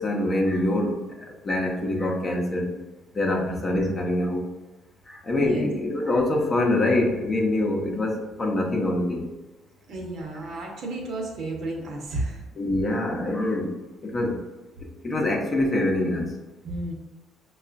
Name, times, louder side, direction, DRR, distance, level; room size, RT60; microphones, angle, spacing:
voice 1, 0.0-2.7 3.1-4.4 5.1-9.3 12.6-13.8 14.0-14.4 14.8-16.3, left 1 dB, 30° left, 0 dB, 0.7 m, -25 dB
voice 2, 5.4-5.7 9.9-12.4 16.6-16.9, right 2 dB, 65° right, 0 dB, 0.9 m, -32 dB
5.3 x 2.4 x 2.4 m, 1.2 s
cardioid pair, 90°, 0 cm